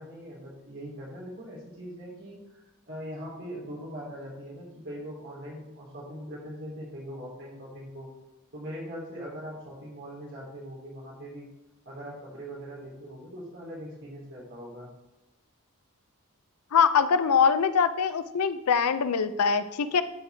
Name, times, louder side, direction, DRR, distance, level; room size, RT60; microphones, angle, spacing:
voice 1, 0.0-8.1 8.5-11.5 11.8-14.9, equal, 55° right, -5 dB, 3.1 m, -41 dB
voice 2, 16.7-20.0, left 6 dB, 85° left, 12 dB, 0.5 m, -23 dB
12.5 x 4.5 x 3.4 m, 0.99 s
head